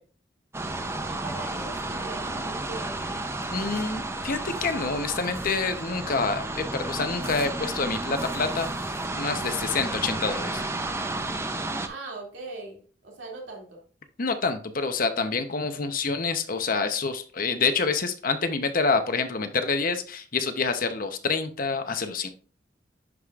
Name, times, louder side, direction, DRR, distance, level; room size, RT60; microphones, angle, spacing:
sound 1, 0.5-11.9, right 2 dB, 15° right, 0.6 m, -32 dB
voice 1, 1.1-3.0 11.8-13.8, right 3 dB, 90° right, -1 dB, 2.5 m, -40 dB
voice 2, 3.5-8.7 9.2-10.6 14.2-22.3, left 4 dB, 50° left, 8 dB, 0.8 m, -27 dB
11.0 x 5.0 x 2.4 m, 0.41 s
head